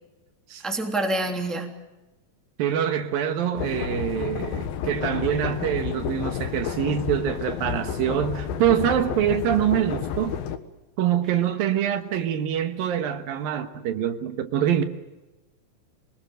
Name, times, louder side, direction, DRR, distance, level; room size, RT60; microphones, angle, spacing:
voice 1, 0.6-1.7, right 2 dB, ahead, 2.4 m, -26 dB
voice 2, 2.6-10.4 11.0-14.8, right 10 dB, 75° right, 3.1 m, -25 dB
sound 1, 3.6-10.6, left 8 dB, 90° left, 3.3 m, -31 dB
26.0 x 20.0 x 7.8 m
omnidirectional pair, 4.2 m